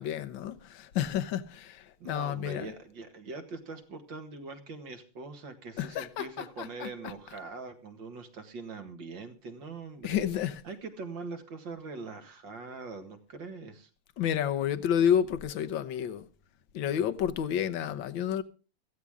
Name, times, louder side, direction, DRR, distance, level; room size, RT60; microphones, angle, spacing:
voice 1, 0.0-2.7 5.8-7.1 10.0-10.6 14.2-16.2 16.7-18.4, left 9 dB, 65° left, 1.6 m, -30 dB
voice 2, 2.0-13.9, right 3 dB, 60° right, 2.6 m, -42 dB
16.5 x 15.0 x 3.7 m
omnidirectional pair, 2.4 m